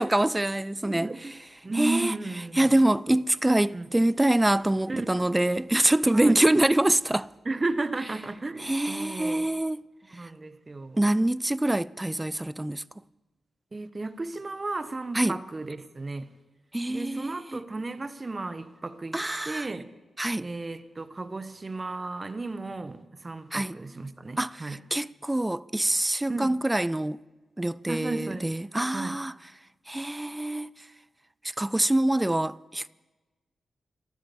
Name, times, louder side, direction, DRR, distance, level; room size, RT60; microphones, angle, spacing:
voice 1, 0.0-1.1 1.8-2.1 2.6-7.3 8.6-9.8 11.0-12.8 15.1-15.3 16.7-17.6 19.1-19.7 20.2-20.5 23.5-23.8 24.4-27.2 27.6-29.3 29.9-30.7 31.6-32.9, right 1 dB, 15° right, 0.4 m, -25 dB
voice 2, 0.8-1.3 1.6-2.9 3.7-3.9 4.9-5.1 6.1-6.4 7.4-9.5 10.1-11.0 13.7-16.3 16.9-20.0 20.4-24.8 26.3-26.6 27.9-28.5 28.9-29.2, right 2 dB, 35° right, 1.1 m, -34 dB
13.0 x 12.5 x 7.1 m
cardioid pair, 50°, 0 cm